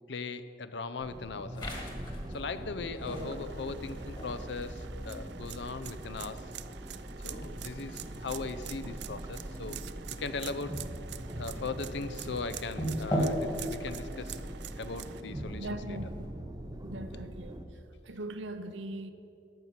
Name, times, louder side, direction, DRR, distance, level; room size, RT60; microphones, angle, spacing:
voice 1, 0.1-1.7 2.3-6.5 7.2-9.8 10.2-10.8 11.4-14.4 14.8-16.0 17.1-17.2, left 4 dB, 65° left, 0.6 m, -39 dB
sound 1, 1.0-17.6, right 1 dB, 20° right, 0.6 m, -42 dB
sound 2, 1.5-16.3, equal, 25° left, 1.9 m, -40 dB
sound 3, 3.1-15.2, right 9 dB, 60° right, 0.4 m, -46 dB
voice 2, 15.5-16.2 16.8-17.6 18.0-19.1, right 1 dB, 80° right, 0.8 m, -40 dB
13.0 x 5.8 x 9.3 m
head